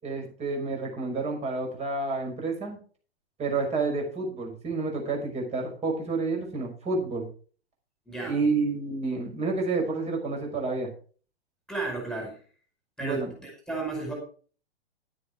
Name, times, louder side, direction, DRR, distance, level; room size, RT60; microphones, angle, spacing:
voice 1, 0.0-2.8 3.4-7.3 8.2-10.9 13.0-13.3, right 3 dB, 20° right, 2 dB, 5.8 m, -29 dB
voice 2, 8.1-8.5 11.7-12.4 13.0-14.2, right 3 dB, ahead, 1 dB, 5.1 m, -33 dB
12.0 x 9.8 x 4.9 m, 0.40 s
figure-of-eight pair, 110°, 32 cm